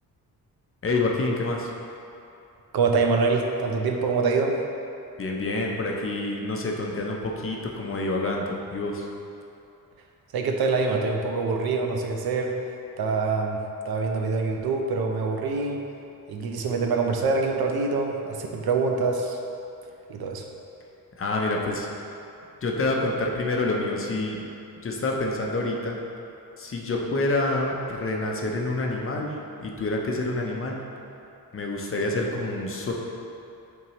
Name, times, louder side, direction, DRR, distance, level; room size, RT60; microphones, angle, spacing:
voice 1, 0.8-1.7 5.2-9.1 21.2-21.9 22.6-24.4 24.8-26.0 26.6-30.8 31.5-32.9, left 2 dB, 35° left, 0 dB, 0.7 m, -27 dB
voice 2, 2.7-4.6 10.3-12.5 13.0-13.6 13.8-15.8 16.3-19.4 20.1-20.4, right 4 dB, 80° right, 2 dB, 0.7 m, -25 dB
8.6 x 3.7 x 3.0 m, 2.8 s
wide cardioid pair, 140°, 36 cm